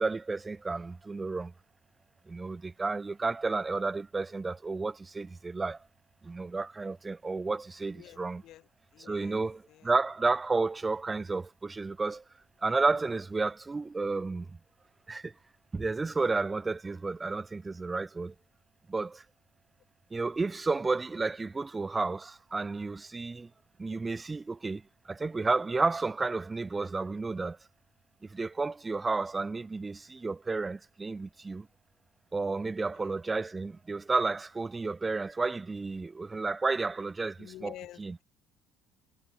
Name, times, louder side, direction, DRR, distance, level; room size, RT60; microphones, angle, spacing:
voice 1, 0.0-1.5 2.3-5.8 6.2-8.4 9.1-12.2 12.6-14.6 15.1-15.3 15.7-18.3 18.9-19.2 20.1-23.5 23.8-27.6 28.3-31.7 32.3-37.7 38.0-38.2, right 3 dB, 20° right, 0.4 m, -31 dB
voice 2, 7.9-9.4 9.7-9.9 32.9-33.2 37.4-38.2, left 14 dB, 65° left, 1.6 m, -50 dB
supercardioid pair, 85°, 0 cm